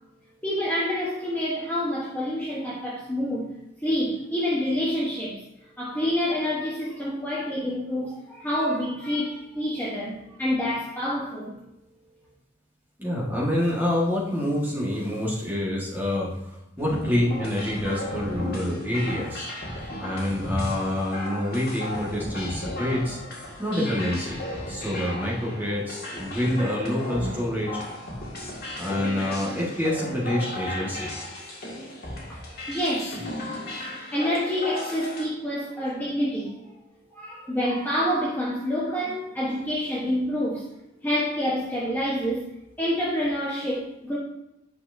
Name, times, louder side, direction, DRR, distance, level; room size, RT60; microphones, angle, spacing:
voice 1, 0.4-3.5 3.8-5.4 5.8-11.6 32.3-32.4 32.7-33.2 34.1-36.5 37.1-40.7 41.0-42.5 42.8-44.2, equal, 10° left, 1.0 m, -27 dB
voice 2, 13.0-19.5 20.0-23.2 23.6-27.8 28.8-31.1, left 1 dB, 10° right, 1.5 m, -27 dB
sound 1, 16.8-35.2, left 1 dB, 50° left, 2.1 m, -35 dB
9.3 x 5.6 x 2.7 m
head